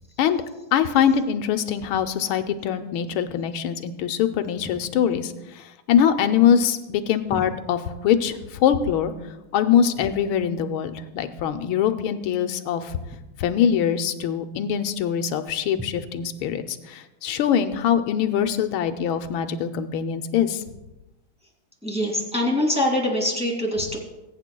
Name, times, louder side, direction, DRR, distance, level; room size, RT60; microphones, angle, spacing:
voice 1, 0.7-9.1 9.5-13.0 13.4-20.6, left 8 dB, 85° left, 8 dB, 1.5 m, -23 dB
voice 2, 21.8-24.0, left 1 dB, 5° right, -1 dB, 2.3 m, -23 dB
21.0 x 8.9 x 2.3 m, 1.0 s
omnidirectional pair, 2.2 m